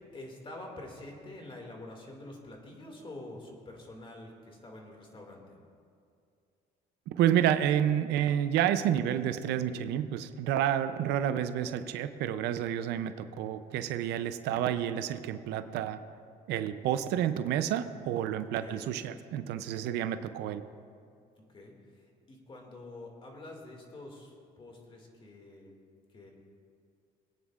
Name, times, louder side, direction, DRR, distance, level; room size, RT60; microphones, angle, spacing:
voice 1, 0.1-5.6 18.6-18.9 21.5-25.7 26.1-26.3, left 2 dB, 30° left, 1 dB, 2.3 m, -47 dB
voice 2, 7.1-16.0 16.5-20.6, right 10 dB, 85° right, 10 dB, 0.6 m, -29 dB
22.5 x 9.2 x 2.5 m, 2.3 s
cardioid pair, 110°, 17 cm